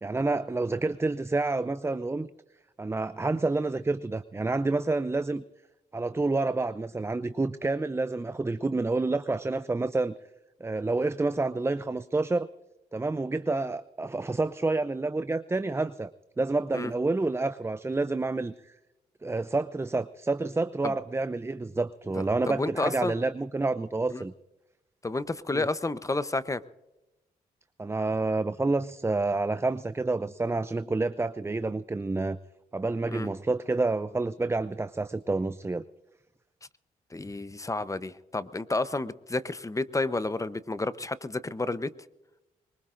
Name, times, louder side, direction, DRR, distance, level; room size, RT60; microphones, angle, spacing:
voice 1, 0.0-2.3 2.8-5.4 5.9-10.2 10.6-12.5 12.9-16.1 16.4-18.7 19.2-24.3 25.5-25.7 27.8-32.4 32.7-35.8, right 3 dB, 15° right, 13 dB, 0.5 m, -28 dB
voice 2, 22.5-23.1 24.1-24.2 25.0-26.6 33.1-33.3 37.1-41.9, left 2 dB, 20° left, 15 dB, 0.8 m, -30 dB
23.0 x 20.5 x 2.6 m, 1.0 s
supercardioid pair, 55°, 16 cm